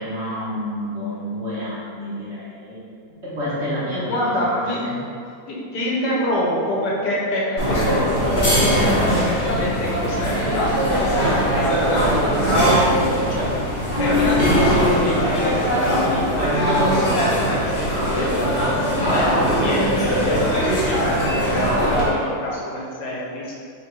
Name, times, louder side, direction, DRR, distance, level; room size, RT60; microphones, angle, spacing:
voice 1, 0.0-2.8 3.2-5.0, equal, 45° right, -9 dB, 1.1 m, -29 dB
voice 2, 4.1-4.8 5.5-16.2 16.6-18.3 19.0-23.5, left 1 dB, 80° left, -5 dB, 1.5 m, -26 dB
sound 1, 7.6-22.0, equal, 35° left, 1.1 m, -20 dB
3.9 x 2.5 x 4.5 m, 2.3 s
omnidirectional pair, 1.8 m